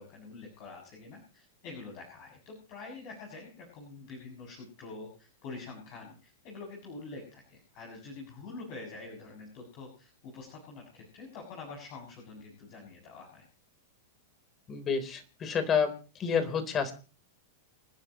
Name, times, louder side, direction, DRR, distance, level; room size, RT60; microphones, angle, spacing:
voice 1, 0.0-13.4, left 3 dB, 50° left, -1 dB, 7.2 m, -46 dB
voice 2, 14.7-15.9 16.2-16.9, left 6 dB, 30° left, 9 dB, 3.7 m, -29 dB
29.5 x 10.5 x 3.1 m, 0.38 s
hypercardioid pair, 105°, 0 cm